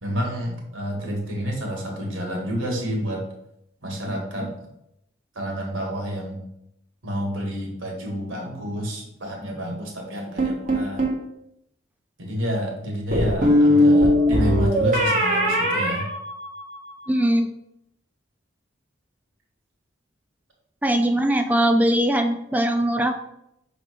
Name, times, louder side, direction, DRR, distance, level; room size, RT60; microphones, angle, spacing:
voice 1, 0.0-3.2 3.8-4.5 5.3-6.4 7.0-11.0 12.2-16.0, equal, 80° right, 0 dB, 1.7 m, -29 dB
sound 1, 10.4-11.2 13.1-16.9, equal, 40° right, 1.6 m, -20 dB
voice 2, 17.1-17.5 20.8-23.1, right 1 dB, 10° right, 5 dB, 0.4 m, -20 dB
5.7 x 3.6 x 4.9 m, 0.80 s
head